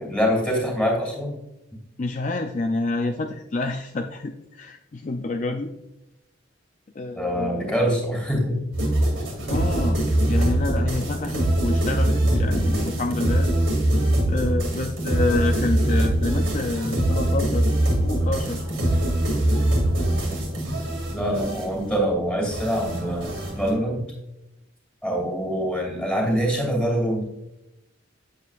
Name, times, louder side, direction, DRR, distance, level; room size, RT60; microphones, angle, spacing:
voice 1, 0.0-1.4 7.1-8.6 21.1-24.1 25.0-27.2, equal, 5° left, -2 dB, 2.5 m, -24 dB
voice 2, 2.0-5.7 7.0-7.7 9.5-10.0 10.3-13.5 14.3-17.7 18.0-18.6, left 2 dB, 40° left, 4 dB, 0.4 m, -28 dB
sound 1, 8.7-23.7, right 1 dB, 70° right, 2.3 m, -23 dB
8.1 x 7.7 x 2.4 m, 0.87 s
head